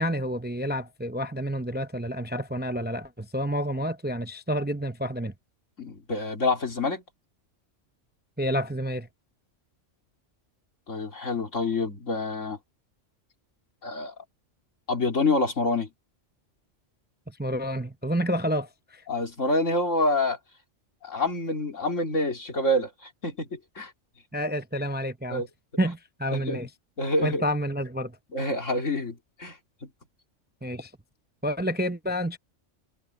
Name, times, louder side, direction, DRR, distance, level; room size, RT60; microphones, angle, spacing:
voice 1, 0.0-5.3 8.4-9.1 17.3-19.0 24.3-25.5 25.8-26.7 27.2-28.2 30.6-30.9 31.4-32.4, equal, 10° right, 0.5 m, -29 dB
voice 2, 5.8-7.0 10.9-12.6 13.8-14.1 14.9-15.9 19.1-20.4 21.0-23.9 25.3-25.5 26.3-26.6 27.0-27.4 28.3-29.6, left 2 dB, 85° left, 3.6 m, -27 dB
omnidirectional pair, 1.3 m